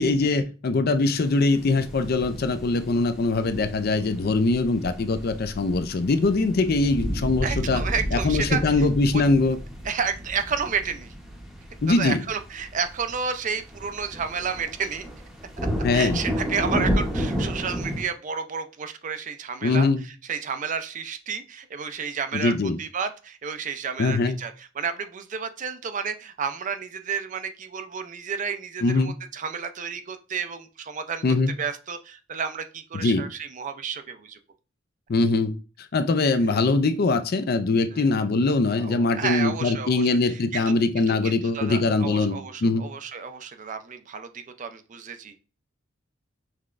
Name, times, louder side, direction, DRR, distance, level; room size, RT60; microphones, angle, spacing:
voice 1, 0.0-7.8 8.1-9.6 11.8-12.2 15.8-16.2 19.6-20.0 22.3-22.8 24.0-24.4 28.8-29.1 31.2-31.5 32.9-33.2 35.1-35.5 35.9-42.8, left 3 dB, 50° left, 11 dB, 0.4 m, -22 dB
sound 1, 1.1-18.0, equal, ahead, 0.8 m, -32 dB
voice 2, 7.4-8.9 9.1-9.2 9.9-11.1 11.9-15.1 15.9-19.9 20.3-22.5 22.8-31.2 31.6-34.4 37.9-38.0 38.8-40.7 41.1-45.4, right 6 dB, 40° right, 9 dB, 0.5 m, -31 dB
5.7 x 3.3 x 2.4 m, 0.34 s
head